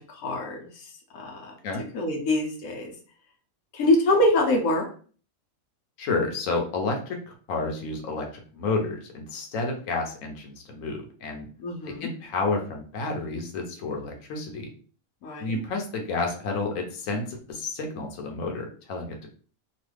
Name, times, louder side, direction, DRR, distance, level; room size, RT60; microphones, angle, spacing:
voice 1, 0.1-0.8 1.1-1.5 1.9-2.9 3.7-4.8 11.6-12.1 15.2-15.6, left 1 dB, 90° left, 0 dB, 1.2 m, -24 dB
voice 2, 6.0-11.5 11.8-14.7 15.4-19.3, left 3 dB, 70° left, 2 dB, 1.1 m, -30 dB
3.0 x 2.3 x 3.2 m, 0.41 s
omnidirectional pair, 1.5 m